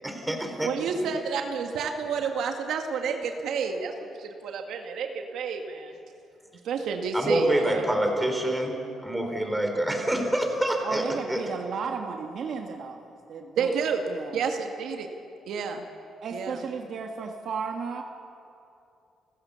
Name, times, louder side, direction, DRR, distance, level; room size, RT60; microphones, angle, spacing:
voice 1, 0.0-0.7 7.1-8.7 9.0-11.4, right 1 dB, 10° right, 3 dB, 4.2 m, -26 dB
voice 2, 0.6-5.9 6.6-7.8 13.6-14.0 14.3-15.1 15.5-15.8 16.3-16.6, right 5 dB, 80° right, 4 dB, 1.8 m, -30 dB
voice 3, 10.8-13.8 14.1-14.4 16.2-18.0, right 5 dB, 60° right, 3 dB, 1.6 m, -34 dB
30.0 x 15.0 x 7.0 m, 2.7 s
cardioid pair, 90°, 0 cm